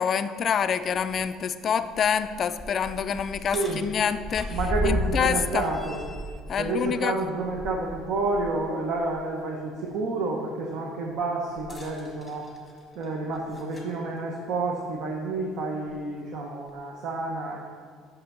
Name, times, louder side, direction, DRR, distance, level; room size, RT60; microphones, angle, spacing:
voice 1, 0.0-5.7 6.5-7.2, left 7 dB, 35° left, 11 dB, 0.3 m, -27 dB
sound 1, 1.9-8.5 8.9-9.1 11.5-14.0 15.0-15.1 15.9-16.0, equal, 5° left, 1.2 m, -35 dB
voice 2, 3.5-3.8 4.5-6.0 6.6-12.5 12.9-17.6, right 3 dB, 60° right, 0 dB, 0.9 m, -29 dB
5.9 x 5.6 x 6.9 m, 2.1 s
cardioid pair, 150°, 0 cm